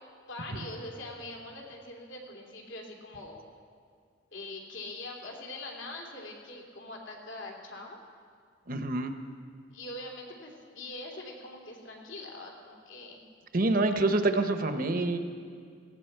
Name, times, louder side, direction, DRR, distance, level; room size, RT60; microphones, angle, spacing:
voice 1, 0.3-3.4 4.3-8.0 9.7-13.2, left 2 dB, 70° left, 0 dB, 2.8 m, -43 dB
voice 2, 8.7-9.1 13.5-15.2, right 2 dB, 45° right, 7 dB, 0.9 m, -26 dB
18.5 x 16.0 x 4.6 m, 2.1 s
head